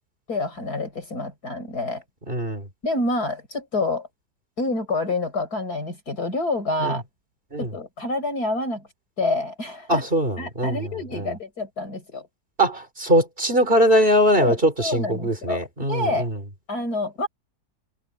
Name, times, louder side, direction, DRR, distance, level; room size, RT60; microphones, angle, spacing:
voice 1, 0.3-2.0 2.8-4.1 4.6-7.0 7.6-8.9 9.2-10.0 10.4-12.3 14.4-15.6 15.9-16.3 16.7-17.3, left 2 dB, 60° left, 6.0 m, -27 dB
voice 2, 2.3-2.7 6.8-7.0 7.5-7.7 9.9-11.3 12.6-16.4, right 1 dB, 30° right, 4.3 m, -21 dB
omnidirectional pair, 1.9 m